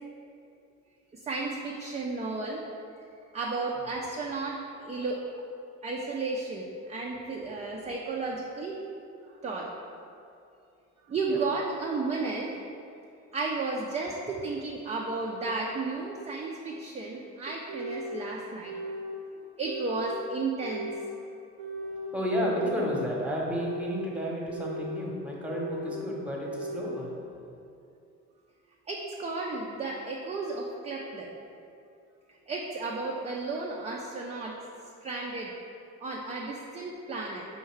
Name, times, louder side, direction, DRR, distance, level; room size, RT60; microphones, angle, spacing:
voice 1, 1.1-2.6 3.3-5.2 5.8-8.8 9.4-9.7 11.1-12.5 13.3-18.7 19.4-20.9 28.9-31.3 32.5-34.6 35.0-35.5 36.0-37.4, right 3 dB, 20° right, -2 dB, 0.3 m, -33 dB
sound 1, 15.5-15.6 16.5-16.6 17.5-18.2 18.7-19.2 19.6-20.2 20.6-21.2 21.6-22.1 22.6-23.1 23.5-24.1 24.5-25.0 25.5-26.0 26.5-27.0, equal, 75° right, 0.6 m, -37 dB
voice 2, 21.8-27.5, equal, 5° right, -3 dB, 0.9 m, -32 dB
4.5 x 2.7 x 3.1 m, 2.5 s
hypercardioid pair, 65°, 37 cm